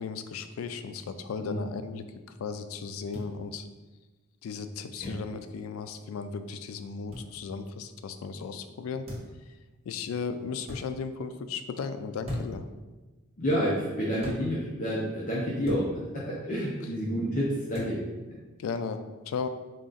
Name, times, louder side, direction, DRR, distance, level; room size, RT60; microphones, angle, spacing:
voice 1, 0.0-2.1 2.4-3.7 4.4-9.1 9.8-12.7 18.6-19.5, left 5 dB, 85° left, 10 dB, 0.3 m, -35 dB
sound 1, 3.1-3.3 5.0-5.2 7.1-7.3 9.0-9.4 10.6-10.8 12.2-12.7 14.2-14.4 15.6-15.9 17.7-17.9, left 1 dB, 30° right, 1.1 m, -37 dB
voice 2, 13.4-18.0, equal, 40° left, -7 dB, 0.6 m, -29 dB
3.8 x 2.4 x 3.8 m, 1.2 s
head